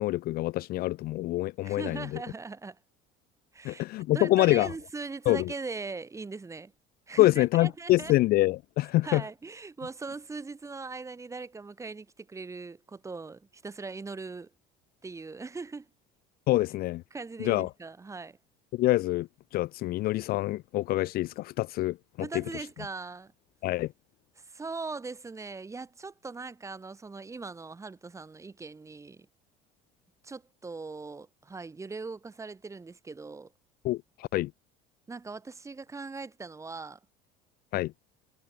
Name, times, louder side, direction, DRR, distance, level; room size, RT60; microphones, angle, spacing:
voice 1, 0.0-2.0 3.6-4.7 5.3-5.4 7.2-9.2 16.5-17.0 17.4-17.7 18.7-19.3 19.5-22.0 23.6-23.9 33.8-34.5 37.7-37.9, left 17 dB, 55° left, 0.6 m, -25 dB
voice 2, 1.6-2.8 3.5-3.8 4.1-6.7 7.1-8.1 9.0-14.5 15.0-15.9 17.1-18.4 22.2-23.3 24.4-29.3 30.2-33.5 35.1-37.0, right 4 dB, 15° right, 2.4 m, -40 dB
cardioid pair, 125°, 19 cm